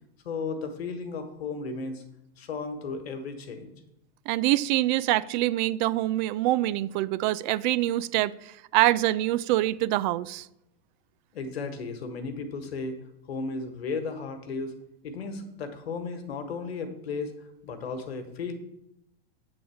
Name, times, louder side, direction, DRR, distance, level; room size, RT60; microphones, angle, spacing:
voice 1, 0.2-2.0 2.4-3.7 11.3-13.0 13.3-14.7 15.0-17.3 17.6-18.5, left 4 dB, 85° left, 1.5 m, -34 dB
voice 2, 4.3-10.5, right 16 dB, 50° right, 0.4 m, -25 dB
8.6 x 4.0 x 6.9 m
hypercardioid pair, 120°, 30 cm